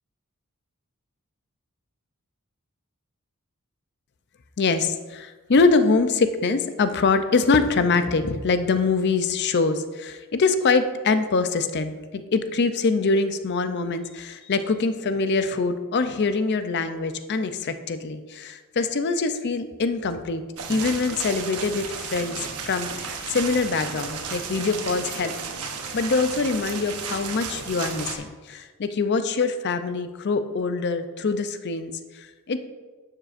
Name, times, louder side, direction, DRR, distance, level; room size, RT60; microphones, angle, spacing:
voice 1, 4.6-20.4 20.7-25.3 25.9-32.6, left 4 dB, 50° left, 10 dB, 0.5 m, -24 dB
sound 1, 20.6-28.1, right 5 dB, 85° right, 1.0 m, -33 dB
11.5 x 7.3 x 2.5 m, 1.4 s
head